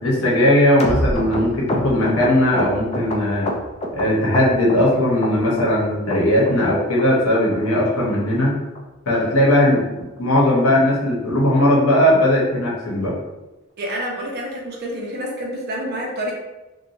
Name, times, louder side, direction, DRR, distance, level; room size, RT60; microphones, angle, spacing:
voice 1, 0.0-3.5 3.9-8.5 9.1-13.2, left 1 dB, 75° left, -4 dB, 0.9 m, -18 dB
sound 1, 0.8-4.0 4.3-4.9 5.2-5.8 6.1-6.2 6.5-6.7 7.0-7.1 7.3-7.6 7.9-8.0 8.2-8.4 8.8-8.9 9.1-9.3 9.6-9.7 10.0-10.2 10.5-10.6, left 1 dB, 30° left, 0.4 m, -26 dB
voice 2, 13.8-16.3, equal, 50° right, -2 dB, 0.6 m, -28 dB
2.5 x 2.2 x 2.9 m, 1.0 s
head